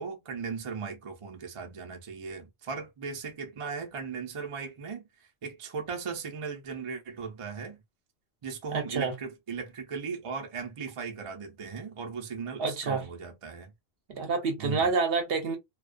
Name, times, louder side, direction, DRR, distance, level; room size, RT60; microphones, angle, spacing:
voice 1, 0.0-7.8 8.4-13.7 14.6-14.9, right 5 dB, 40° right, 0.5 m, -37 dB
voice 2, 8.7-9.1 12.6-13.0 14.1-15.6, right 4 dB, 65° right, 0.8 m, -28 dB
2.3 x 2.2 x 2.4 m
omnidirectional pair, 1.1 m